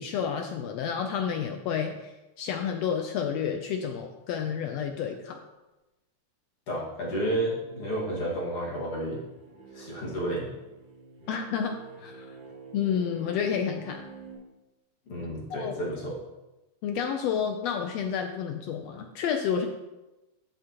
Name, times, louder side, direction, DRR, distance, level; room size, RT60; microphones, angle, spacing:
voice 1, 0.0-5.4 11.3-12.3 12.7-14.0 15.5-15.7 16.8-19.7, left 7 dB, 80° left, 5 dB, 1.5 m, -30 dB
voice 2, 6.7-9.2 9.7-10.5 15.1-16.2, right 1 dB, 50° left, -4 dB, 2.7 m, -31 dB
sound 1, 9.0-14.3, right 4 dB, 45° right, 3.9 m, -47 dB
12.5 x 7.2 x 2.9 m, 1.0 s
omnidirectional pair, 3.5 m